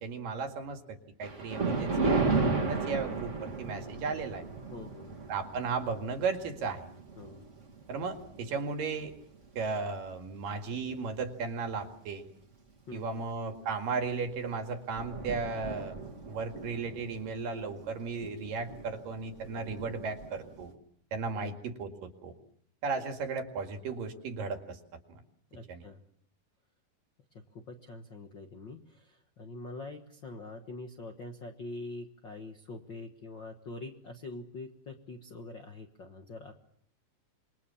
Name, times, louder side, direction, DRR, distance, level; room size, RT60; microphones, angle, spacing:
voice 1, 0.0-4.4 5.3-6.8 7.9-9.1 9.6-12.2 12.9-16.0 16.3-20.7 21.1-22.4 22.8-24.8 25.7-25.8, right 4 dB, 70° right, 6 dB, 3.7 m, -35 dB
Thunder, 1.2-9.8 10.3-10.5 11.2-11.3 11.7-11.8 13.9-14.1 14.5-14.6 14.7-20.7, right 3 dB, 25° right, 2.0 m, -35 dB
voice 2, 4.7-5.1 7.2-7.4 12.9-13.2 21.3-21.5 22.9-23.1 25.5-26.0 27.3-36.5, left 2 dB, 50° left, 4 dB, 1.4 m, -44 dB
27.0 x 22.5 x 7.2 m, 0.66 s
omnidirectional pair, 4.2 m